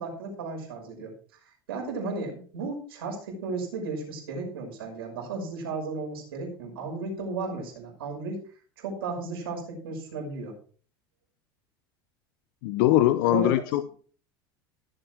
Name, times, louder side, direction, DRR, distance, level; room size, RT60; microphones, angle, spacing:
voice 1, 0.0-8.4 8.8-10.5 13.3-13.5, right 3 dB, 80° right, 1 dB, 5.9 m, -34 dB
voice 2, 12.6-13.9, left 14 dB, 65° left, 13 dB, 0.9 m, -22 dB
16.5 x 7.8 x 4.6 m, 0.42 s
hypercardioid pair, 85°, 12 cm